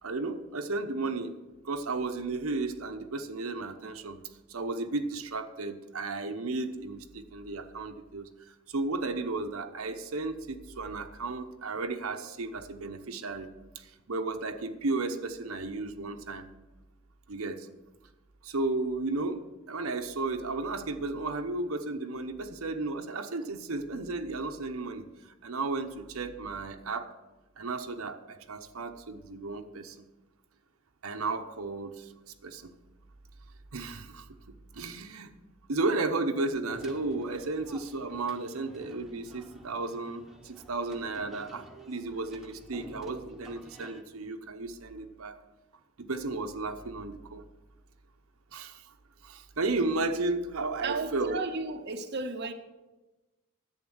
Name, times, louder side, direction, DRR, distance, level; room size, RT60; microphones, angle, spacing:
voice 1, 0.0-1.3 1.6-4.2 4.5-13.5 13.7-16.4 17.3-17.7 18.4-27.1 27.6-30.0 31.0-32.1 32.4-32.7 33.7-35.3 35.7-45.4 46.1-47.4 48.5-48.9 49.2-51.4, right 3 dB, 85° right, 6 dB, 0.9 m, -34 dB
sound 1, 36.7-44.0, right 1 dB, ahead, 1.0 m, -51 dB
voice 2, 50.8-52.5, right 3 dB, 50° right, 6 dB, 0.7 m, -34 dB
11.0 x 8.0 x 6.3 m, 1.1 s
head